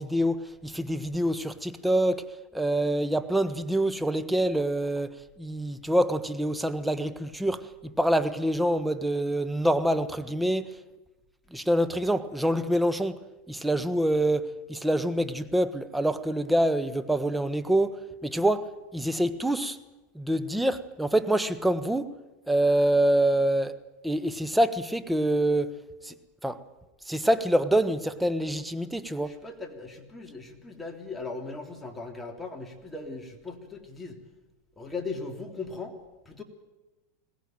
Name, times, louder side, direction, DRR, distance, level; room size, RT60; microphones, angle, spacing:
voice 1, 0.0-10.8 11.5-13.2 13.5-19.8 20.1-22.2 22.5-23.8 24.0-26.1 26.4-26.6 27.0-29.4, right 1 dB, 5° right, 1.3 m, -26 dB
voice 2, 29.2-34.2 34.8-36.0 36.2-36.4, left 3 dB, 15° left, 3.3 m, -38 dB
22.0 x 18.5 x 9.1 m
hypercardioid pair, 105°, 0 cm